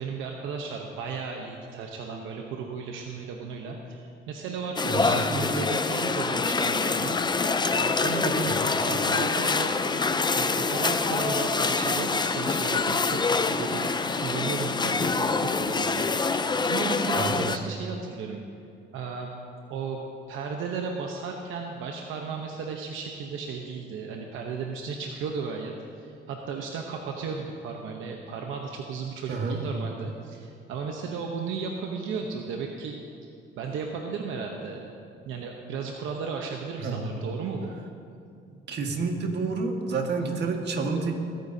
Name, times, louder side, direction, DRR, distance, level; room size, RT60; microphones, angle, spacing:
voice 1, 0.0-7.2 7.7-9.8 10.3-13.2 13.5-13.9 14.1-16.4 16.7-18.4 18.9-19.3 19.7-20.0 20.3-25.7 26.0-33.0 33.2-33.3 33.6-34.9 35.3-37.7, right 5 dB, 85° right, 1 dB, 0.9 m, -34 dB
sound 1, 4.8-17.6, left 4 dB, 20° left, 0.5 m, -25 dB
voice 2, 29.3-29.6 36.8-37.0 38.7-41.1, right 4 dB, 60° right, 2 dB, 1.7 m, -29 dB
22.0 x 9.4 x 2.8 m, 2.5 s
cardioid pair, 90°, 20 cm